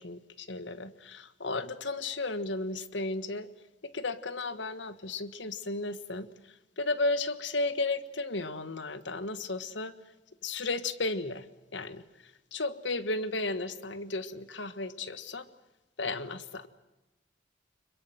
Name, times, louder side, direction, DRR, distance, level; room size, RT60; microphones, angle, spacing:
voice 1, 0.0-3.5 3.8-9.9 10.4-11.5 11.7-15.5 16.0-16.7, left 2 dB, 70° left, 13 dB, 1.4 m, -34 dB
26.0 x 22.5 x 7.9 m, 1.1 s
head